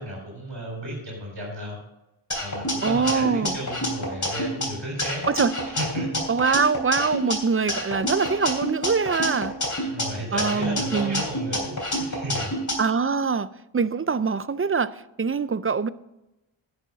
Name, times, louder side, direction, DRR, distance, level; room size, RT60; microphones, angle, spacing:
voice 1, 0.0-1.8 2.4-5.2 5.7-6.2 9.9-12.6, right 1 dB, 65° right, 3.7 m, -34 dB
sound 1, 2.3-4.7 5.0-7.4 7.7-10.0 10.4-12.7, equal, 40° left, 3.3 m, -28 dB
voice 2, 2.8-3.6 5.3-5.5 6.3-9.5 10.3-11.2 12.8-13.5 13.7-15.9, right 5 dB, 30° right, 0.4 m, -23 dB
11.0 x 6.9 x 5.9 m
wide cardioid pair, 60°, 47 cm